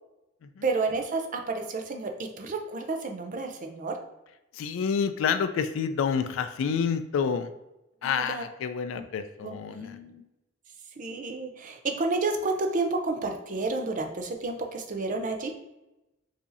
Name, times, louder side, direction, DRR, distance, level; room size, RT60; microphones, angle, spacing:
voice 1, 0.6-4.0 8.0-8.4 8.9-9.0 9.4-10.2 11.0-15.5, right 3 dB, 40° right, 4 dB, 0.5 m, -31 dB
voice 2, 4.5-7.5 8.0-10.0, left 6 dB, 75° left, 10 dB, 0.3 m, -28 dB
4.8 x 2.7 x 2.6 m, 0.95 s
head